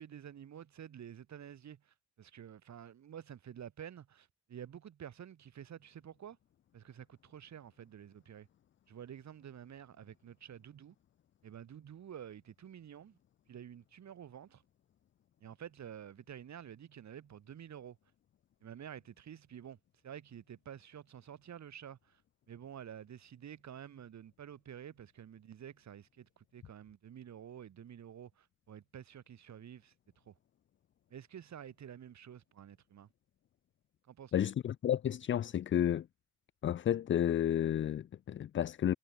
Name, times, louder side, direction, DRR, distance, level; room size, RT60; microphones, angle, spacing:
voice 1, 0.0-6.4 6.7-8.5 8.9-11.0 11.4-13.2 13.5-14.6 15.4-18.0 18.6-19.8 20.0-22.2 22.5-29.9 30.3-30.4 31.1-33.1 34.0-34.5, right 9 dB, 70° right, 3.7 m, -50 dB
voice 2, 34.3-36.1 36.6-38.9, left 10 dB, 45° left, 0.4 m, -31 dB
cardioid pair, 100°, 29 cm